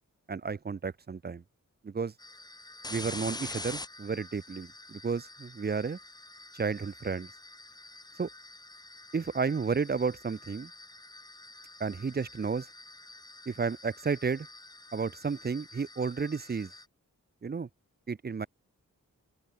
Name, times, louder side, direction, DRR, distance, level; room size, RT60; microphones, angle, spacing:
voice 1, 0.3-1.4 1.8-2.1 2.9-6.0 6.5-7.3 8.2-8.3 9.1-10.7 11.8-12.7 13.5-14.5 14.9-16.7 17.4-17.7 18.1-18.5, right 5 dB, 30° right, 0.4 m, -32 dB
sound 1, 2.2-16.9, left 2 dB, 15° left, 0.6 m, -47 dB
open air
wide cardioid pair, 65°, 32 cm